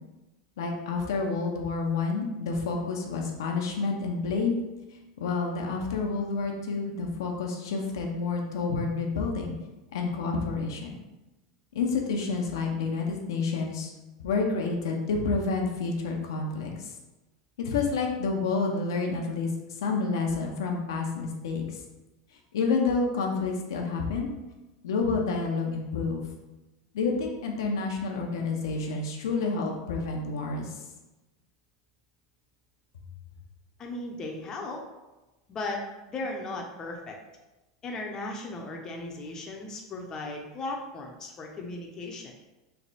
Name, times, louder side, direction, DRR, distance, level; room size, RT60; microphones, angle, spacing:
voice 1, 0.6-4.6 5.2-9.5 9.9-10.9 11.7-13.9 14.2-16.9 17.6-21.8 22.5-24.3 24.8-26.3 26.9-30.7, left 4 dB, 85° left, 1 dB, 0.6 m, -29 dB
voice 2, 33.8-34.8 35.5-35.8 36.1-37.2 37.8-42.3, left 2 dB, 30° left, 1 dB, 0.6 m, -36 dB
3.3 x 2.1 x 4.0 m, 1.0 s
supercardioid pair, 125°, 2 cm